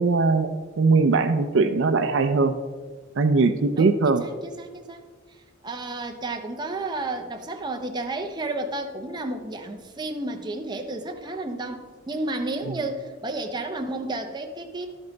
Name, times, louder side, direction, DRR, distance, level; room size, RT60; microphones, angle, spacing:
voice 1, 0.0-2.5 3.2-4.2, right 4 dB, 60° right, 9 dB, 0.4 m, -20 dB
voice 2, 3.8-5.1 5.6-14.9, right 2 dB, 20° right, 4 dB, 0.6 m, -32 dB
12.0 x 5.4 x 3.9 m, 1.4 s
head